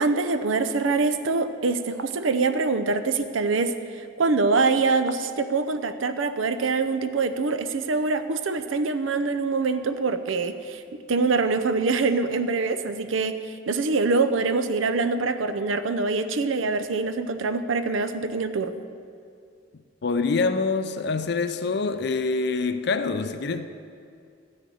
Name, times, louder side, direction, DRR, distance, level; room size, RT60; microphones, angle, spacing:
voice 1, 0.0-3.7 4.2-10.8 11.1-18.7, right 3 dB, 80° right, 10 dB, 0.6 m, -24 dB
voice 2, 20.0-23.7, left 4 dB, 55° left, 9 dB, 0.5 m, -25 dB
12.5 x 6.5 x 9.2 m, 2.4 s
head